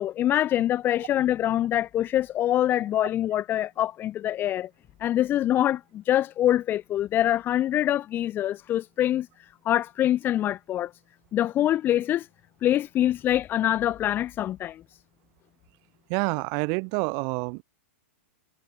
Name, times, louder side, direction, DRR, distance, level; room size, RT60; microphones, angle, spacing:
voice 1, 0.0-4.7 5.0-9.3 9.6-10.9 11.3-12.3 12.6-14.8, left 12 dB, 25° left, 0.9 m, -24 dB
voice 2, 16.1-17.6, right 39 dB, 45° right, 1.9 m, -27 dB
hypercardioid pair, 130°, 8 cm